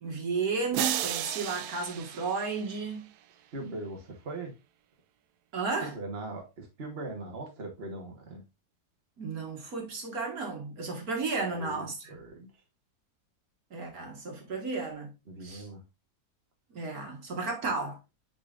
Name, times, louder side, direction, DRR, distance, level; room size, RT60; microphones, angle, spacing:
voice 1, 0.0-3.1 5.5-5.9 9.2-12.2 13.7-15.1 15.4-15.7 16.7-18.0, right 4 dB, 65° right, 2.1 m, -33 dB
sound 1, 0.7-3.1, right 12 dB, 80° right, 1.1 m, -34 dB
voice 2, 3.5-4.5 5.8-8.4 11.5-12.5 15.3-15.8 17.6-17.7, right 2 dB, 40° right, 1.6 m, -40 dB
9.5 x 4.1 x 2.5 m
omnidirectional pair, 1.7 m